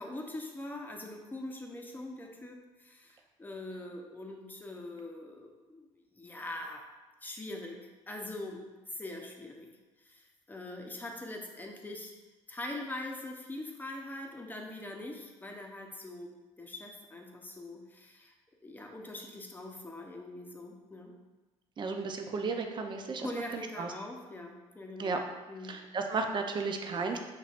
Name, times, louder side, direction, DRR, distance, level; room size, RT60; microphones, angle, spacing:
voice 1, 0.0-6.9 7.2-9.7 10.0-12.1 12.5-18.3 18.6-21.1 23.2-25.2 25.5-25.8, left 1 dB, 15° left, 1 dB, 0.7 m, -43 dB
voice 2, 21.8-23.3 23.8-23.9 25.0-25.2 25.7-27.2, right 4 dB, 40° right, 4 dB, 0.5 m, -33 dB
5.8 x 3.0 x 2.5 m, 1.2 s
cardioid pair, 85°, 13 cm